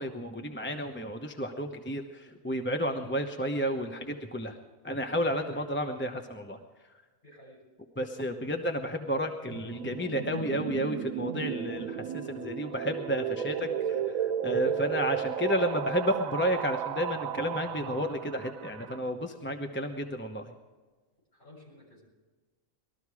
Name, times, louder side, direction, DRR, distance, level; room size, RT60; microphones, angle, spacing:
voice 1, 0.0-4.6 4.8-6.6 8.0-13.7 14.4-20.5, equal, 10° left, 4 dB, 0.8 m, -31 dB
voice 2, 5.4-5.7 7.2-7.6 13.3-15.1 21.3-22.0, left 1 dB, 40° left, -4 dB, 7.4 m, -53 dB
sound 1, 9.5-19.0, right 9 dB, 85° right, 1.1 m, -34 dB
20.0 x 13.5 x 4.8 m, 1.3 s
omnidirectional pair, 1.4 m